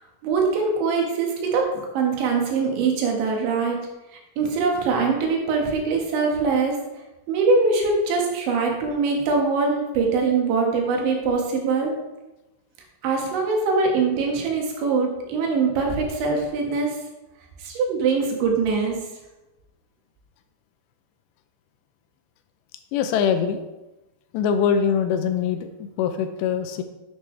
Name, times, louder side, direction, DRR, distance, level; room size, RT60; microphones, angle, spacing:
voice 1, 0.2-3.8 4.4-6.8 7.3-11.9 13.0-17.0 17.6-19.0, right 4 dB, 90° right, 0 dB, 4.1 m, -22 dB
voice 2, 22.9-23.6 24.3-26.8, left 7 dB, 80° left, 8 dB, 2.8 m, -23 dB
10.5 x 8.7 x 3.3 m, 1.0 s
omnidirectional pair, 5.1 m